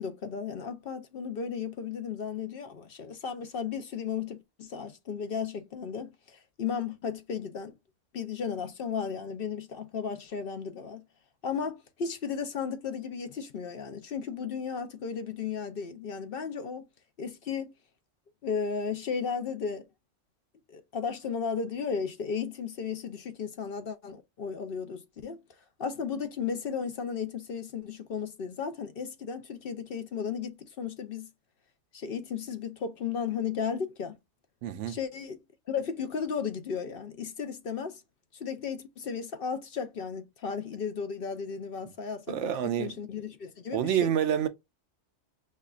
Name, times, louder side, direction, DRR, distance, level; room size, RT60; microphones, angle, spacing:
voice 1, 0.0-7.7 8.1-11.0 11.4-16.9 17.2-17.7 18.4-19.9 20.7-25.4 25.8-31.3 31.9-34.2 34.9-38.0 38.3-42.3 42.8-44.1, left 6 dB, 55° left, 0.7 m, -34 dB
voice 2, 34.6-35.0 42.3-42.9 43.7-44.5, right 9 dB, 75° right, 0.9 m, -28 dB
5.4 x 2.3 x 2.3 m
omnidirectional pair, 1.2 m